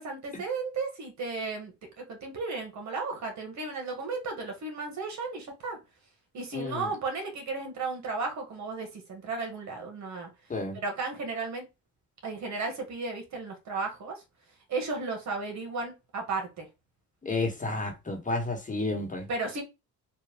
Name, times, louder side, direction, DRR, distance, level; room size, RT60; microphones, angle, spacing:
voice 1, 0.0-5.8 6.3-10.3 10.8-11.6 12.2-14.2 14.7-16.7 19.3-19.6, right 3 dB, 65° right, 1.5 m, -34 dB
voice 2, 6.5-6.9 10.5-10.8 17.2-19.3, left 2 dB, 25° left, 1.4 m, -31 dB
3.5 x 2.6 x 3.5 m
cardioid pair, 90°, 30 cm